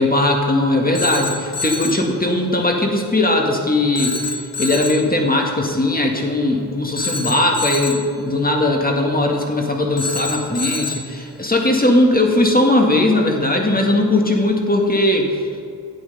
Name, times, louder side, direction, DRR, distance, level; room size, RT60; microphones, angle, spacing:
voice 1, 0.0-4.2 4.6-15.4, left 1 dB, 20° left, 1 dB, 1.8 m, -18 dB
Telephone, 0.9-2.1 3.9-5.1 7.0-8.1 10.0-11.1, left 3 dB, 35° left, 1.1 m, -27 dB
8.8 x 8.0 x 5.4 m, 2.4 s
cardioid pair, 45°, 42 cm